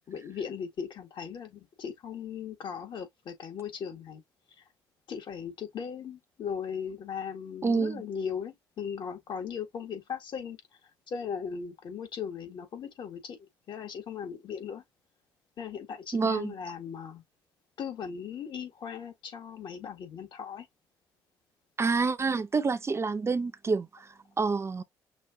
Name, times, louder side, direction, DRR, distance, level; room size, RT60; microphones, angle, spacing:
voice 1, 0.0-4.2 5.1-10.6 11.1-13.4 13.7-14.8 15.6-17.2 17.8-20.7, left 7 dB, 60° left, 1.8 m, -38 dB
voice 2, 7.6-8.0 16.1-16.5 21.8-24.8, right 4 dB, 30° right, 0.7 m, -28 dB
6.1 x 2.5 x 2.7 m
hypercardioid pair, 55°, 9 cm